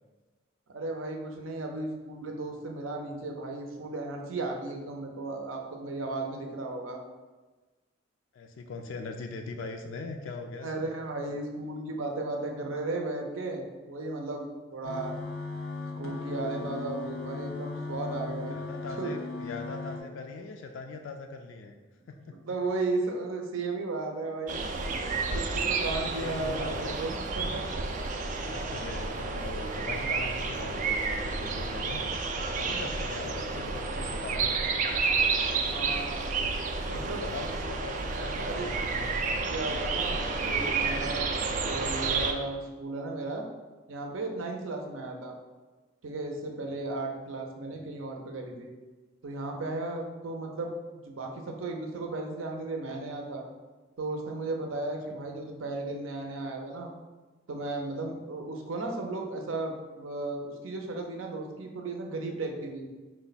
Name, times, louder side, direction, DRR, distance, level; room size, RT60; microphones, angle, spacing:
voice 1, 0.7-7.0 10.6-14.4 14.7-15.1 16.0-18.6 19.0-19.1 22.3-27.6 35.6-36.3 36.9-37.2 38.4-38.7 39.5-41.3 41.6-43.4 43.9-45.3 46.0-48.7 49.2-50.7 51.0-53.4 54.0-56.9 57.5-62.9, right 2 dB, 80° right, 2 dB, 0.6 m, -35 dB
voice 2, 8.3-10.9 18.5-21.7 22.1-22.4 25.7-27.0 28.5-32.0 32.6-34.9 36.7-39.8 47.7-47.8 55.1-55.2, left 3 dB, 70° left, 4 dB, 0.3 m, -41 dB
sound 1, 14.8-20.0, left 3 dB, 90° left, 0.7 m, -37 dB
sound 2, 24.5-42.3, right 4 dB, 40° right, 0.3 m, -30 dB
4.6 x 2.2 x 4.0 m, 1.3 s
head